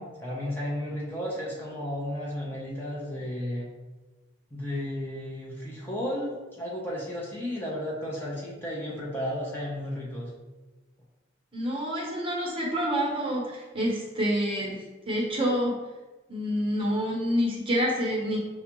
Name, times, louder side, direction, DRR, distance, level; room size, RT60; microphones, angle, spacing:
voice 1, 0.0-3.7 4.5-10.3, left 1 dB, 10° left, -5 dB, 0.6 m, -33 dB
voice 2, 11.5-15.7 16.3-18.4, equal, 30° right, -3 dB, 1.0 m, -27 dB
5.8 x 2.4 x 2.9 m, 1.2 s
head